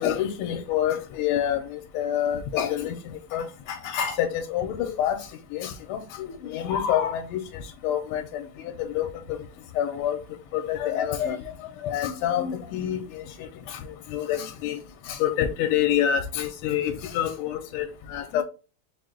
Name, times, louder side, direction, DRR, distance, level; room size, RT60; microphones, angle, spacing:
voice 1, 0.0-5.2 5.5-7.4 7.8-8.4 8.8-9.4 9.8-10.2 10.5-11.4 11.8-13.8 14.1-14.8 15.1-18.4, left 10 dB, 80° left, 1.4 m, -27 dB
4.6 x 2.2 x 3.6 m
omnidirectional pair, 2.4 m